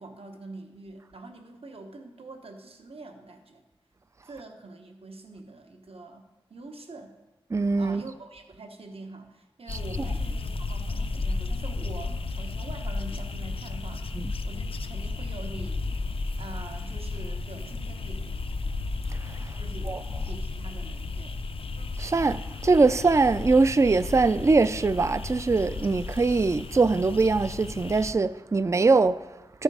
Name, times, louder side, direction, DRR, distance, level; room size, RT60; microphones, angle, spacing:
voice 1, 0.0-3.6 4.2-6.2 6.5-7.2 7.8-15.9 16.4-18.2 19.5-21.4, right 2 dB, 75° right, 1.1 m, -44 dB
voice 2, 7.5-8.0 9.7-9.8 14.1-14.3 19.1-19.5 19.8-20.0 22.0-29.6, right 3 dB, 30° right, 0.3 m, -23 dB
sound 1, 9.7-28.1, left 3 dB, 70° left, 0.5 m, -33 dB
13.5 x 5.3 x 4.8 m
wide cardioid pair, 80°, 10 cm